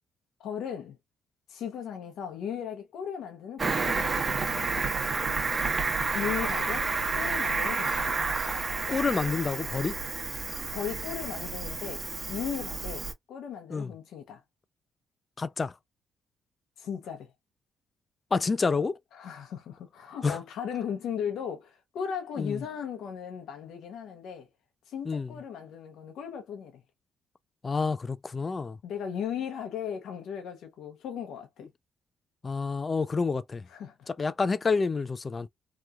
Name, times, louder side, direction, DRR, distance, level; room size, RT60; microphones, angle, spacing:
voice 1, 0.4-1.0 1.5-4.2 6.1-8.3 10.7-14.4 16.8-17.3 19.1-24.5 24.9-26.8 28.8-31.7 33.7-34.1, left 8 dB, 75° left, 0.8 m, -37 dB
Cricket, 3.6-13.1, right 4 dB, 30° right, 1.1 m, -30 dB
voice 2, 8.9-10.0 13.7-13.9 15.4-15.7 18.3-19.0 20.2-20.4 22.4-22.6 25.0-25.3 27.6-28.8 32.4-33.6 34.1-35.5, left 4 dB, 30° left, 0.4 m, -28 dB
3.0 x 2.3 x 2.3 m
cardioid pair, 90°, 0 cm